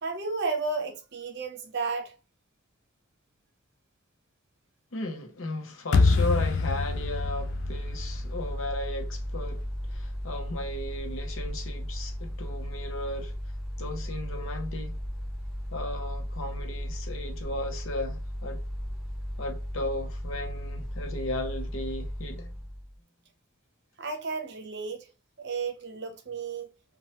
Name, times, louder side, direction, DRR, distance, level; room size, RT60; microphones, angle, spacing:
voice 1, 0.0-2.2 24.0-25.1 25.4-26.7, right 4 dB, 55° right, 0.7 m, -33 dB
voice 2, 4.9-13.3 13.8-15.0 15.7-18.6 19.4-22.6, left 1 dB, 75° left, 0.7 m, -35 dB
sound 1, 5.9-9.0, left 4 dB, 55° left, 0.3 m, -26 dB
Mechanical fan, 6.1-23.0, equal, ahead, 0.9 m, -35 dB
2.9 x 2.2 x 2.9 m
head